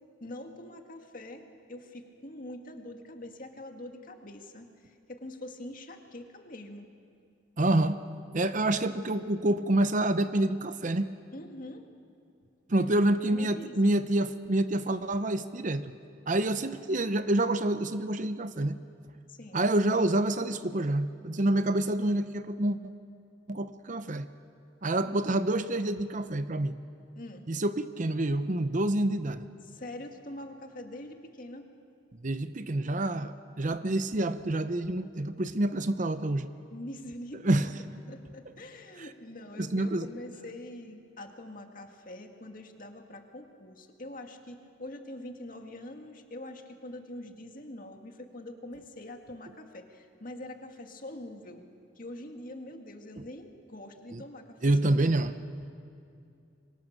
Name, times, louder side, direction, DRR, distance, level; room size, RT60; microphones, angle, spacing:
voice 1, 0.2-6.9 11.3-11.8 12.9-13.0 13.3-13.9 19.3-19.6 25.0-25.1 27.2-27.5 29.7-31.7 36.7-37.7 38.1-51.7 52.0-55.2, left 1 dB, 50° left, 4 dB, 2.1 m, -44 dB
voice 2, 7.6-8.0 8.3-11.1 12.7-15.9 16.3-18.8 19.5-22.8 23.5-24.3 24.8-26.7 27.5-29.5 32.2-36.5 37.4-37.7 39.6-40.1 54.1-54.2 54.6-55.3, right 1 dB, 45° right, 11 dB, 0.8 m, -27 dB
27.0 x 24.5 x 6.7 m, 2.5 s
head